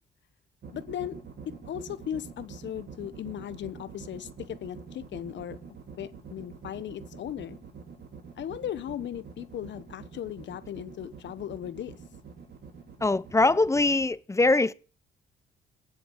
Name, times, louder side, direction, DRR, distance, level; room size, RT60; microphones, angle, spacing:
sound 1, 0.6-14.1, right 6 dB, 55° right, 3.9 m, -45 dB
voice 1, 0.7-1.2 1.6-5.6 6.0-7.6 8.4-12.0, left 10 dB, 65° left, 1.2 m, -37 dB
voice 2, 13.0-14.7, left 2 dB, 15° left, 0.7 m, -22 dB
18.5 x 7.9 x 6.5 m
cardioid pair, 90°, 20 cm